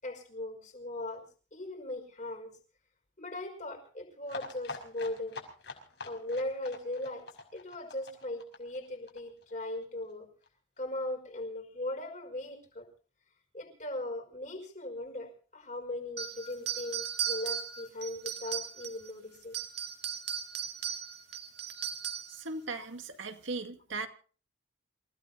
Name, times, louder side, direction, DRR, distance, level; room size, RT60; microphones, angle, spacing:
voice 1, 0.0-1.3 1.5-2.5 3.2-5.4 6.0-7.3 7.5-10.3 10.8-12.9 13.5-19.6, left 1 dB, 40° left, 4 dB, 5.2 m, -38 dB
sound 1, 4.3-9.8 10.1-10.2 10.4-10.5 10.8-10.9, left 3 dB, 55° left, 5.7 m, -45 dB
sound 2, 16.2-19.1 19.4-22.4, right 8 dB, 55° right, 2.3 m, -37 dB
voice 2, 22.3-24.1, right 3 dB, 75° right, 6 dB, 2.0 m, -38 dB
28.0 x 17.0 x 2.7 m, 0.40 s
head